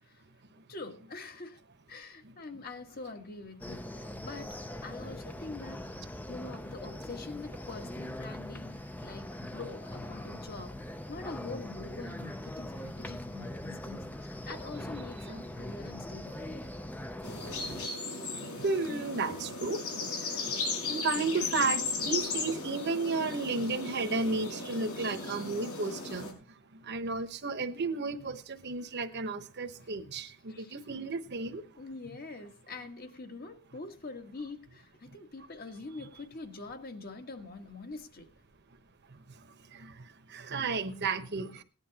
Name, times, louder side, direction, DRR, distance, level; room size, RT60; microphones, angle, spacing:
voice 1, 0.7-1.6 1.9-5.9 6.3-16.7 30.5-30.8 31.6-38.3, left 3 dB, 45° left, 1.5 m, -44 dB
sound 1, 3.6-17.9, left 1 dB, 10° left, 0.5 m, -41 dB
sound 2, 17.2-26.3, left 4 dB, 80° left, 4.8 m, -36 dB
voice 2, 18.4-19.8 20.4-20.5 20.9-26.4 26.9-31.6 39.7-39.9 40.3-41.6, right 3 dB, 50° right, 1.1 m, -33 dB
18.0 x 10.5 x 2.9 m
head